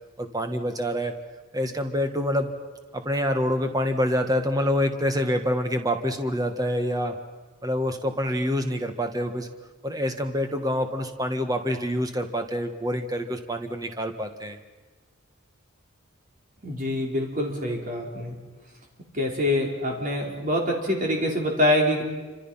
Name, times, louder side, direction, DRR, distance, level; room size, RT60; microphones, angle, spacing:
voice 1, 0.2-1.1 1.5-2.5 2.9-7.1 7.6-9.5 9.8-14.6, equal, 20° right, 6 dB, 1.6 m, -26 dB
voice 2, 16.6-18.4 19.1-22.0, left 1 dB, 40° right, 0 dB, 4.5 m, -25 dB
28.5 x 26.0 x 5.8 m, 1.3 s
head